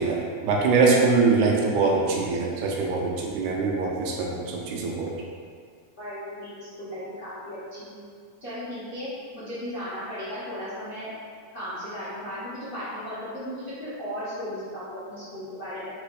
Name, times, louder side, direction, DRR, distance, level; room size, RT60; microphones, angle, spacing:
voice 1, 0.0-5.2, right 4 dB, 80° right, -1 dB, 2.0 m, -23 dB
voice 2, 6.0-7.6 7.9-8.0 8.4-9.1 9.3-11.1 11.5-15.9, equal, 65° left, -15 dB, 0.5 m, -36 dB
4.7 x 3.5 x 3.2 m, 2.1 s
omnidirectional pair, 3.6 m